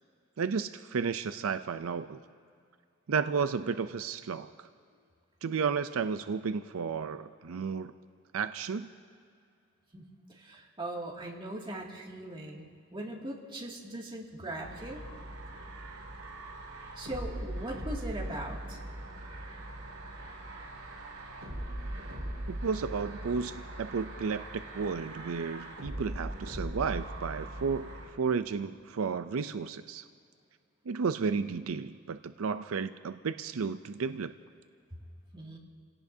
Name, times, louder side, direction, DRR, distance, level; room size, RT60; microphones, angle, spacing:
voice 1, 0.4-2.2 3.1-4.7 5.4-7.9 8.3-8.9 22.5-30.1 30.9-34.3, right 5 dB, 85° right, 11 dB, 0.5 m, -33 dB
voice 2, 10.3-15.0 17.0-18.8 21.8-22.0 35.3-35.6, right 1 dB, 25° right, -2 dB, 2.3 m, -40 dB
sound 1, 14.6-28.1, right 1 dB, 65° right, 4.7 m, -40 dB
29.5 x 17.5 x 2.7 m, 2.3 s
head